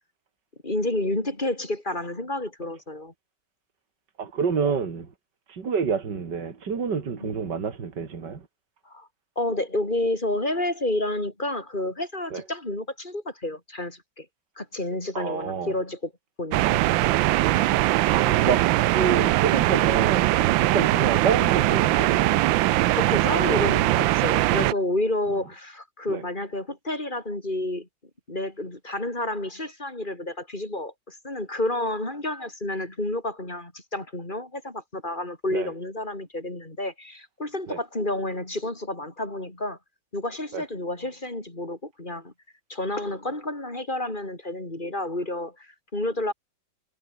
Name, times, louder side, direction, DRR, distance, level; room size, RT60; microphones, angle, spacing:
voice 1, 0.6-3.1 7.2-7.3 8.8-9.1 9.4-14.3 14.6-16.1 16.4-16.9 22.9-27.9 28.3-39.8 40.1-42.3 42.7-46.3, left 1 dB, 25° left, 4.7 m, -30 dB
voice 2, 4.2-5.1 5.5-8.4 12.3-12.4 15.1-15.7 18.1-18.7 18.9-22.3 26.1-26.2 35.5-35.7 37.7-37.8 40.5-40.6, right 6 dB, 65° right, 3.1 m, -28 dB
sound 1, 16.5-24.7, right 17 dB, 85° right, 1.4 m, -21 dB
omnidirectional pair, 2.0 m